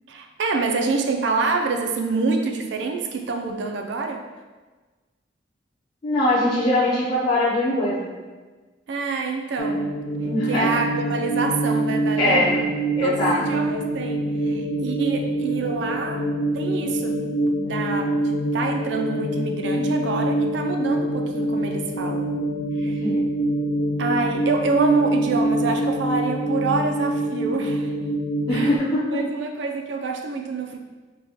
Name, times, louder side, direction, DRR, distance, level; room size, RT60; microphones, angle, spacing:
voice 1, 0.1-4.2 8.9-9.9 10.5-12.7 13.0-16.3 16.5-22.3 22.8-23.0 24.0-28.0 28.5-28.7 29.1-30.8, right 3 dB, 70° right, 3 dB, 0.4 m, -27 dB
voice 2, 6.0-8.1 10.2-10.7 12.2-12.5 13.0-13.4 23.0-23.2 28.5-29.2, left 1 dB, 25° left, -11 dB, 0.8 m, -21 dB
sound 1, 9.6-28.8, right 1 dB, 75° left, 0.4 m, -25 dB
4.6 x 2.2 x 4.0 m, 1.3 s
head